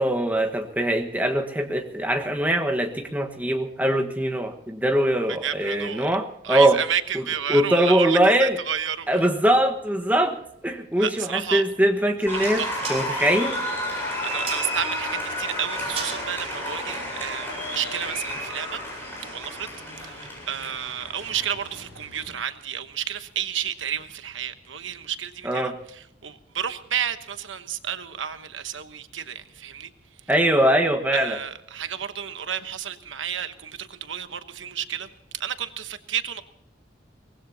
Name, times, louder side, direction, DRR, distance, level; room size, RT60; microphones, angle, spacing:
voice 1, 0.0-6.8 7.5-8.6 9.1-10.4 10.6-12.6 12.9-13.6 25.4-25.7 30.3-31.4, right 1 dB, 10° right, 1.4 m, -22 dB
voice 2, 5.3-6.1 6.4-9.2 11.0-11.6 12.3-12.7 13.1-13.3 14.1-18.8 19.3-19.7 20.0-29.9 31.1-36.4, right 9 dB, 85° right, 1.1 m, -31 dB
sound 1, 11.7-18.1, right 4 dB, 35° right, 5.5 m, -41 dB
Applause, 12.3-22.3, left 1 dB, 10° left, 7.8 m, -32 dB
23.5 x 19.0 x 2.8 m
head